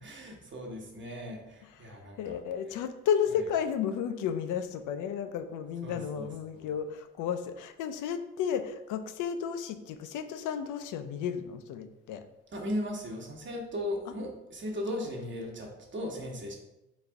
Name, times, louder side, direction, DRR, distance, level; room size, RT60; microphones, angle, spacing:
voice 1, 0.0-2.4 5.8-6.7 12.5-16.6, left 1 dB, 40° right, 1 dB, 1.1 m, -37 dB
voice 2, 1.8-12.2, left 8 dB, 90° left, 9 dB, 0.5 m, -33 dB
4.1 x 2.6 x 4.5 m, 0.93 s
cardioid pair, 90°, 30 cm